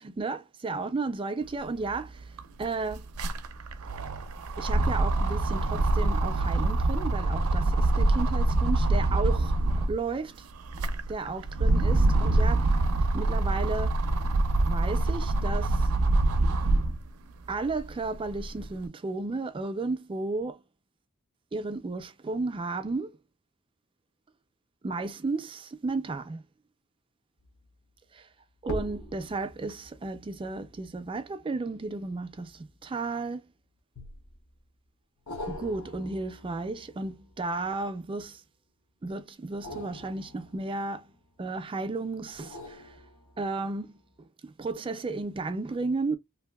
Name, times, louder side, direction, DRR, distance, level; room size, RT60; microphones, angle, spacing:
voice 1, 0.0-2.3 2.6-3.1 4.6-10.5 11.1-12.7 13.1-14.0 14.7-15.9 17.5-20.6 21.5-23.2 24.8-26.4 28.1-28.3 28.6-33.5 35.5-38.4 39.0-41.1 41.4-43.0 43.4-46.2, right 3 dB, 25° right, 0.3 m, -33 dB
sound 1, 1.9-2.0 2.2-10.0 10.5-17.0 17.5-18.7, right 2 dB, 85° right, 0.5 m, -25 dB
Metal Impact and Scraping Spring, 27.4-27.7 28.6-33.3 34.0-34.6 35.3-38.2 39.4-41.5 42.3-43.7 44.2-44.3, left 1 dB, 80° left, 0.7 m, -44 dB
3.0 x 2.6 x 2.2 m
head